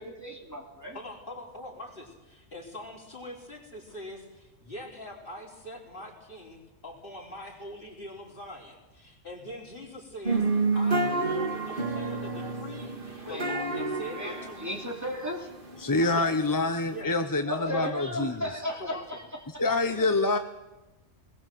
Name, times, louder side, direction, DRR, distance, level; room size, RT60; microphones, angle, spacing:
voice 1, 0.0-1.0 13.2-13.6 14.1-15.5 17.5-19.2 19.5-19.6, left 1 dB, 15° right, 0 dB, 2.7 m, -35 dB
voice 2, 0.9-14.9 16.0-16.3 16.8-17.8 18.8-19.2 19.6-20.0, left 1 dB, 45° left, -1 dB, 4.2 m, -43 dB
sound 1, 10.3-17.0, right 3 dB, 45° right, 2.6 m, -30 dB
voice 3, 15.8-18.5 19.6-20.4, left 2 dB, 20° left, 7 dB, 0.6 m, -26 dB
20.5 x 19.5 x 7.7 m, 1.1 s
omnidirectional pair, 1.3 m